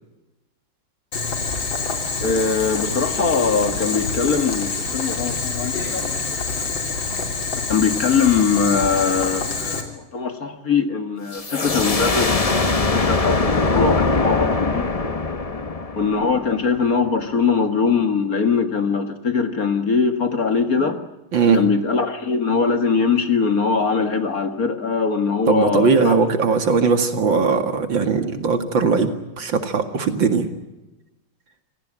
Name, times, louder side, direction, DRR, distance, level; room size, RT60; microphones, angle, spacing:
Boiling, 1.1-9.8, left 4 dB, 65° left, 3.8 m, -26 dB
voice 1, 2.2-6.7 7.7-14.9 16.0-21.0 21.5-26.2, left 5 dB, 45° left, 8 dB, 1.9 m, -21 dB
sound 1, 11.3-16.9, left 3 dB, 25° left, 0.8 m, -22 dB
voice 2, 25.5-29.1 29.4-30.5, right 5 dB, 60° right, 7 dB, 2.7 m, -19 dB
27.0 x 17.0 x 8.9 m, 1.0 s
omnidirectional pair, 2.3 m